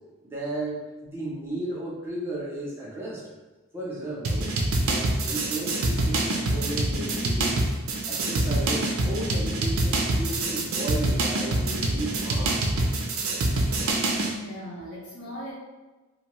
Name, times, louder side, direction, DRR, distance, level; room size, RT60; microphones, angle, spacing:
voice 1, 0.2-3.3 3.7-4.5 4.9-7.6 8.1-12.6, right 1 dB, 10° right, -6 dB, 0.5 m, -34 dB
sound 1, 4.2-14.3, right 2 dB, 75° right, 0.4 m, -25 dB
voice 2, 14.3-15.5, equal, 85° left, -6 dB, 0.9 m, -39 dB
2.7 x 2.1 x 3.0 m, 1.2 s
head